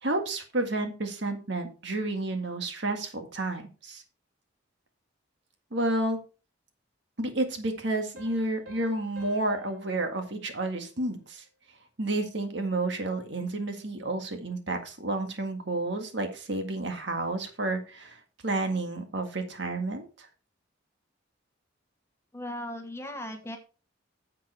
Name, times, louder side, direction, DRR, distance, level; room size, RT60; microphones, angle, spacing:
voice 1, 0.0-4.0 5.7-6.2 7.2-11.4 12.0-20.3, right 2 dB, 60° right, 5 dB, 1.8 m, -31 dB
Piano, 8.2-11.4, right 1 dB, 80° right, 3.4 m, -53 dB
voice 2, 22.3-23.6, left 1 dB, 15° left, 5 dB, 1.3 m, -37 dB
10.5 x 7.7 x 3.3 m, 0.33 s
head